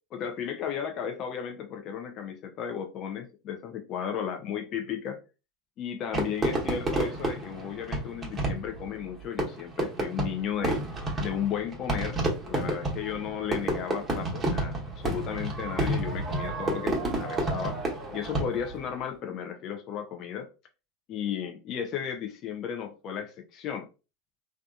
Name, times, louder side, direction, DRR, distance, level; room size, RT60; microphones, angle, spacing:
voice 1, 0.1-5.2 5.8-10.8 11.2-17.8 18.1-20.5 21.1-23.9, left 8 dB, 45° left, 0.5 m, -34 dB
Fireworks, 6.1-18.8, right 2 dB, 20° right, 0.9 m, -30 dB
2.6 x 2.3 x 2.3 m
hypercardioid pair, 90°, 0 cm